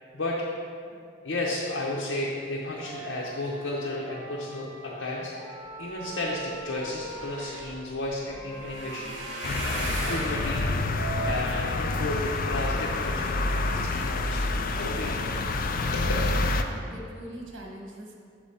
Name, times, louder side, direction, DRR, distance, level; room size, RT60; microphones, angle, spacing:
voice 1, 1.2-5.3 5.8-9.2 9.6-10.6 11.2-14.4 14.7-15.3 15.9-16.1, left 2 dB, 75° left, -4 dB, 0.8 m, -33 dB
Wind instrument woodwind instrument, 2.7-7.5 8.2-11.4, right 3 dB, 25° right, 1.4 m, -41 dB
sound 1, 6.2-6.3 6.5-12.9 13.5-13.9 14.3-14.5 14.8-14.9, right 1 dB, 65° right, 1.3 m, -39 dB
sound 2, 9.4-16.6, left 2 dB, 45° left, 0.4 m, -28 dB
voice 2, 16.5-18.2, equal, 85° right, 0 dB, 1.2 m, -42 dB
6.0 x 5.0 x 5.5 m, 2.3 s
head